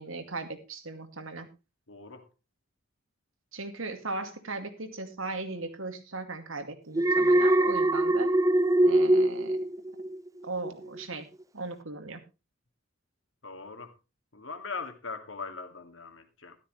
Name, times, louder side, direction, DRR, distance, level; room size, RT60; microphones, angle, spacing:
voice 1, 0.0-1.5 3.5-8.3 8.8-9.6 10.4-11.3 11.5-12.2, right 3 dB, 85° right, 2.4 m, -37 dB
voice 2, 1.9-2.3 13.4-13.9 14.3-16.6, left 4 dB, 70° left, 2.4 m, -40 dB
Alarm, 6.9-10.3 10.6-11.0, right 1 dB, 15° right, 0.6 m, -23 dB
13.0 x 12.5 x 3.2 m
head